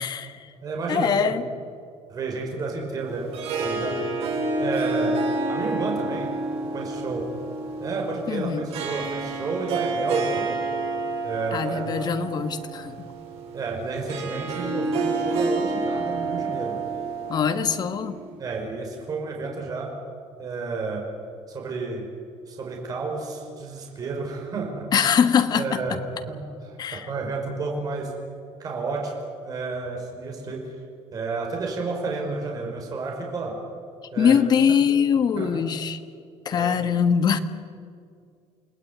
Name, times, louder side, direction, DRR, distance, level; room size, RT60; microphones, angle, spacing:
voice 1, 0.0-0.5 0.9-1.4 8.3-8.6 11.5-13.1 17.3-18.2 24.9-26.0 26.8-27.1 34.2-36.0 36.4-37.4, left 7 dB, 40° left, 9 dB, 1.6 m, -22 dB
voice 2, 0.6-1.4 2.1-4.1 4.6-5.2 5.5-6.3 6.7-7.3 7.8-10.6 11.2-12.1 13.5-16.8 18.4-19.9 20.4-21.1 21.5-22.1 22.5-25.0 25.5-28.1 28.6-29.1 29.4-30.7 31.1-33.6 34.1-34.4 35.4-35.6 36.5-36.8, right 3 dB, 35° right, 0 dB, 5.2 m, -31 dB
Harp, 3.0-18.3, right 3 dB, 65° right, 6.6 m, -29 dB
29.0 x 19.5 x 9.5 m, 2.3 s
cardioid pair, 160°, 11 cm